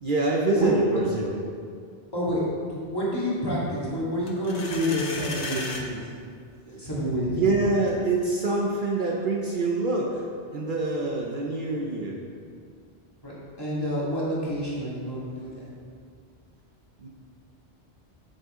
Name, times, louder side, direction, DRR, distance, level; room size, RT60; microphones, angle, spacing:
voice 1, 0.0-1.4 7.3-10.3 10.5-12.2 17.0-17.1, right 2 dB, 55° right, -1 dB, 0.8 m, -25 dB
voice 2, 0.5-1.0 2.1-6.1 6.7-7.5 13.2-15.7, equal, 20° left, -8 dB, 2.1 m, -28 dB
sound 1, 4.3-5.9, left 2 dB, 40° left, 0.8 m, -34 dB
8.4 x 6.6 x 3.6 m, 2.2 s
omnidirectional pair, 1.1 m